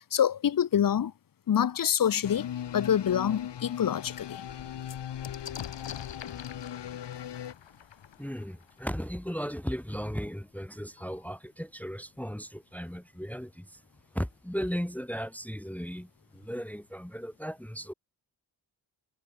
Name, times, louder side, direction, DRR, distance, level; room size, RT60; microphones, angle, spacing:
voice 1, 0.1-1.1 1.5-2.5 2.7-4.5, left 9 dB, 50° left, 0.7 m, -26 dB
sound 1, 2.2-7.5, left 10 dB, 75° left, 0.9 m, -38 dB
sound 2, 2.8-2.9 3.4-3.5 3.7-9.3 10.3-10.4 10.6-11.2, left 9 dB, 90° left, 1.9 m, -46 dB
voice 2, 8.2-13.8 14.1-17.9, equal, 5° left, 1.2 m, -36 dB
cardioid pair, 50°, 43 cm